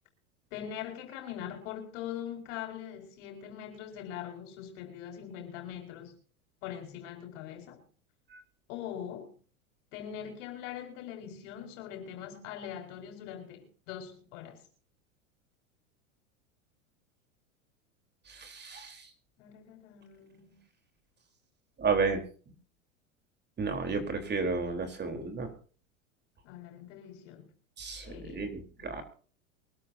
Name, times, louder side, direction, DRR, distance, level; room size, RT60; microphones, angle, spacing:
voice 1, 0.5-6.2 6.6-7.8 8.7-9.3 9.9-14.6 19.4-20.6 26.4-27.5 28.0-28.5 28.8-28.9, left 10 dB, 60° left, 5.1 m, -42 dB
voice 2, 18.3-19.1 21.8-22.2 23.6-25.5 27.8-29.0, right 4 dB, 25° right, 3.9 m, -32 dB
24.0 x 13.0 x 2.8 m
hypercardioid pair, 100°, 41 cm